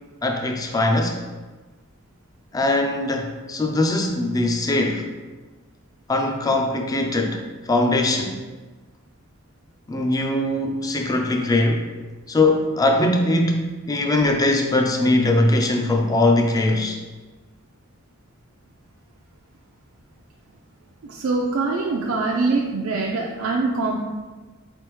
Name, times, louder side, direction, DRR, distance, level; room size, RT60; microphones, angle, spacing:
voice 1, 0.2-1.3 2.5-5.1 6.1-8.4 9.9-11.9 12.3-17.0, left 2 dB, 15° left, 3 dB, 0.3 m, -21 dB
voice 2, 21.0-24.0, right 3 dB, 75° right, -1 dB, 0.4 m, -23 dB
4.1 x 3.4 x 3.0 m, 1.3 s
head